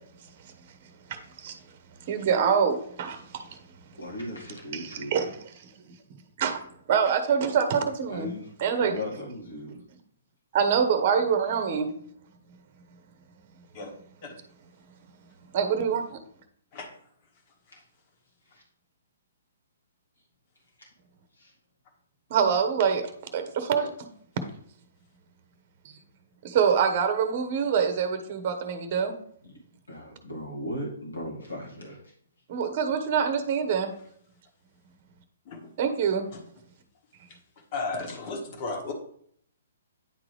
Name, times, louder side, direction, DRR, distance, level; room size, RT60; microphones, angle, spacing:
voice 1, 1.1-1.5 2.1-3.5 4.7-5.2 5.8-5.9 6.4-6.6 6.9-8.3 8.6-9.0 10.5-11.9 15.5-16.2 22.3-23.9 26.4-29.1 32.5-33.9 35.8-36.3, right 7 dB, 40° right, 8 dB, 0.9 m, -25 dB
voice 2, 3.9-5.3 8.1-8.5 8.8-9.8 17.7-17.8 18.4-18.6 20.8-20.9 21.3-21.5 29.9-32.1, left 1 dB, 85° left, -3 dB, 1.8 m, -37 dB
voice 3, 37.7-38.9, left 3 dB, 40° left, 3 dB, 1.5 m, -34 dB
9.4 x 3.7 x 3.3 m, 0.63 s
figure-of-eight pair, 125°, 0 cm